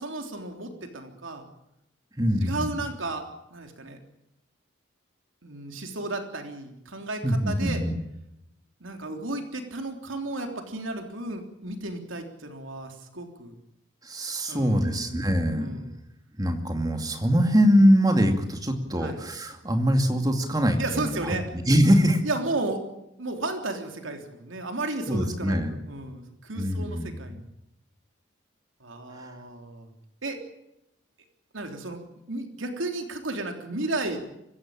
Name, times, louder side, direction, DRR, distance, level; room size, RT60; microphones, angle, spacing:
voice 1, 0.0-1.4 2.4-4.0 5.4-7.8 8.8-13.5 14.5-15.3 15.6-15.9 19.0-19.2 20.8-21.4 22.2-22.8 23.2-27.4 28.8-29.9 30.2-30.4 31.5-32.0 32.3-34.2, right 2 dB, 80° right, 4 dB, 3.5 m, -33 dB
voice 2, 2.2-2.8 7.2-7.9 14.0-15.8 16.4-21.2 21.5-22.2 25.1-25.8 26.6-27.2 29.1-29.3, equal, 20° right, 5 dB, 2.5 m, -23 dB
25.0 x 15.5 x 8.8 m, 0.85 s
head